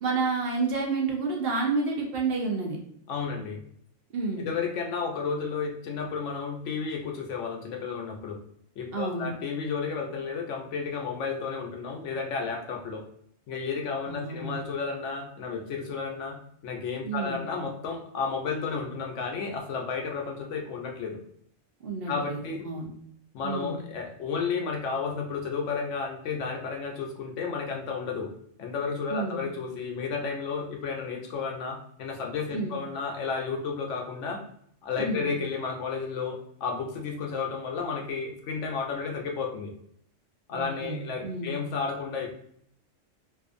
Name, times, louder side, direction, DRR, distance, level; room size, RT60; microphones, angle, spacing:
voice 1, 0.0-2.8 4.1-4.5 8.9-9.3 14.0-14.7 17.0-17.4 21.8-22.9 23.4-23.8 29.1-29.4 32.5-32.7 35.0-35.3 40.5-41.6, right 4 dB, 60° right, 0 dB, 0.7 m, -30 dB
voice 2, 3.1-3.6 4.4-8.4 8.8-13.0 13.5-16.4 16.6-21.2 22.1-22.6 23.3-28.3 28.6-34.4 34.8-39.7 40.5-42.3, left 5 dB, 75° left, 1 dB, 0.9 m, -32 dB
2.6 x 2.4 x 2.5 m, 0.68 s
omnidirectional pair, 1.3 m